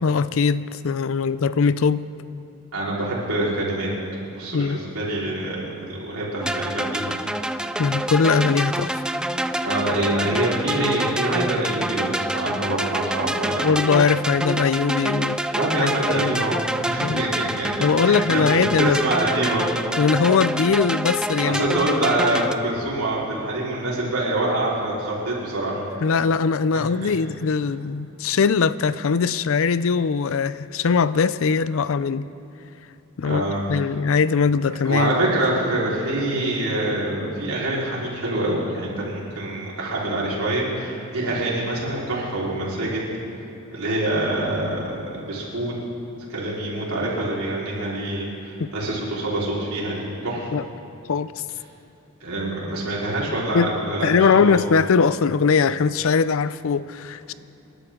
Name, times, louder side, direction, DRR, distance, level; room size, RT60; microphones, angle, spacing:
voice 1, 0.0-2.0 4.5-4.8 7.8-9.0 13.6-15.4 15.8-16.4 17.0-17.2 17.8-19.0 20.0-21.7 26.0-32.3 33.2-35.1 48.6-48.7 50.5-50.6 51.1-51.3 53.5-53.7 54.0-57.3, left 5 dB, 65° left, 16 dB, 0.5 m, -21 dB
voice 2, 2.7-3.9 4.3-7.2 9.6-13.6 15.5-17.7 18.0-19.7 21.5-25.8 26.7-27.1 33.2-33.8 34.8-43.0 43.7-45.7 46.3-50.5 52.2-54.5 57.3-57.4, right 1 dB, 75° right, -6 dB, 4.4 m, -25 dB
sound 1, 6.4-22.5, right 1 dB, 5° right, 0.3 m, -27 dB
26.5 x 11.5 x 3.8 m, 2.9 s
head